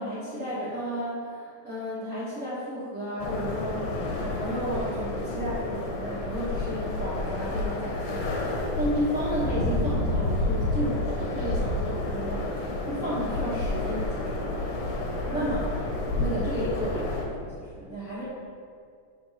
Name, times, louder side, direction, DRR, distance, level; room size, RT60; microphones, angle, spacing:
voice 1, 0.0-3.9 4.2-12.5 12.9-14.5 15.3-15.9 16.1-18.2, equal, 50° right, -11 dB, 0.9 m, -33 dB
sound 1, 3.2-17.2, left 2 dB, 80° left, 2.4 m, -30 dB
7.7 x 3.5 x 5.7 m, 2.2 s
omnidirectional pair, 3.7 m